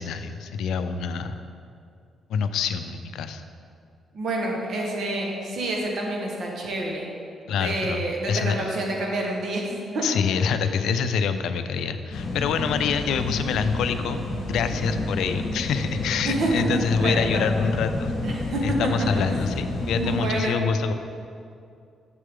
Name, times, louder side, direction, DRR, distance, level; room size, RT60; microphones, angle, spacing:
voice 1, 0.0-1.4 2.3-3.4 7.5-8.0 8.3-8.6 10.0-18.1 18.6-20.9, left 6 dB, 85° left, 9 dB, 0.4 m, -26 dB
voice 2, 4.1-7.1 7.5-10.0 16.2-17.5 18.2-19.4 20.0-20.5, right 1 dB, 60° right, -1 dB, 1.3 m, -28 dB
sound 1, 12.1-20.2, left 2 dB, 55° left, 0.9 m, -29 dB
6.7 x 6.6 x 3.6 m, 2.4 s
cardioid pair, 110°, 0 cm